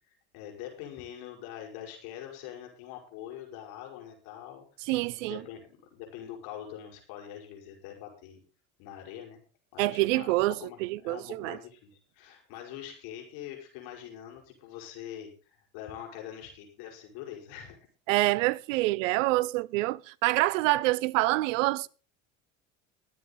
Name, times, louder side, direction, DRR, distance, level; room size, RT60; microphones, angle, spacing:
voice 1, 0.3-4.7 5.2-8.4 8.8-9.4 9.7-17.9, left 10 dB, 65° left, 5.1 m, -44 dB
voice 2, 4.9-5.4 9.8-10.5 10.8-11.6 18.1-21.9, right 19 dB, 70° right, 0.7 m, -26 dB
22.0 x 7.5 x 4.1 m
hypercardioid pair, 70°, 40 cm